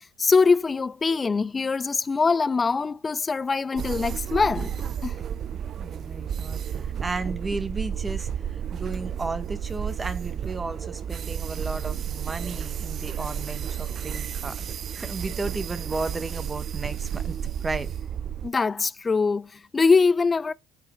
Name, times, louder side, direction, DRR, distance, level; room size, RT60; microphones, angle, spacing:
voice 1, 0.0-4.7 5.0-5.2 18.4-20.5, left 4 dB, 30° left, 0.4 m, -23 dB
sound 1, 3.8-18.5, right 9 dB, 50° right, 0.4 m, -32 dB
voice 2, 5.8-14.6 14.9-17.9, right 3 dB, 25° right, 1.1 m, -34 dB
5.8 x 4.7 x 4.4 m
hypercardioid pair, 65°, 0 cm